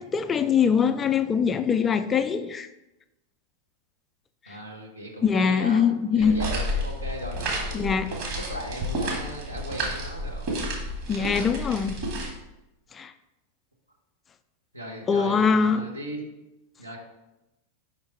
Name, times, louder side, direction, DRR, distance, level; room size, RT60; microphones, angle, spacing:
voice 1, 0.0-2.7 5.2-6.4 7.7-8.1 11.1-12.0 12.9-13.1 15.1-15.8, left 6 dB, 20° left, 0.3 m, -23 dB
voice 2, 4.5-10.6 11.1-12.0 14.7-16.2 16.8-17.0, equal, 85° right, 1.2 m, -38 dB
sound 1, 6.2-12.3, equal, 45° right, 1.7 m, -31 dB
5.1 x 4.3 x 4.6 m
figure-of-eight pair, 90°, 0 cm